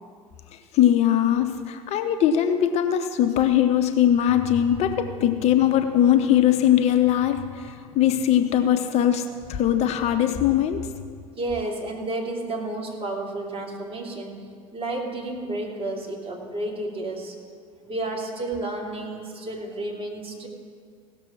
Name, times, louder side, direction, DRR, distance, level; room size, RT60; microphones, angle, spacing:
voice 1, 0.5-10.9, left 10 dB, 35° left, 8 dB, 0.7 m, -21 dB
voice 2, 11.4-17.3 17.8-20.5, right 2 dB, 30° right, -2 dB, 3.0 m, -31 dB
17.0 x 6.8 x 6.2 m, 2.1 s
figure-of-eight pair, 80°, 18 cm